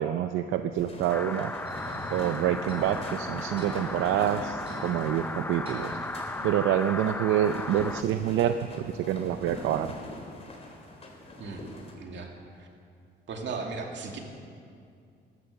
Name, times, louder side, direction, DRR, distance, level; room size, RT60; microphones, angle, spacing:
voice 1, 0.0-1.5 2.1-5.9 6.4-9.9, right 11 dB, 90° right, 10 dB, 0.5 m, -27 dB
sound 1, 0.7-11.9, left 1 dB, 30° left, 3.2 m, -42 dB
sound 2, 1.1-8.0, left 2 dB, 10° left, 0.6 m, -36 dB
sound 3, 1.7-6.7, right 1 dB, 30° right, 3.9 m, -44 dB
voice 2, 11.9-12.7 13.3-14.2, right 4 dB, 65° right, 2 dB, 2.3 m, -37 dB
14.0 x 13.0 x 6.5 m, 2.3 s
cardioid pair, 90°, 20 cm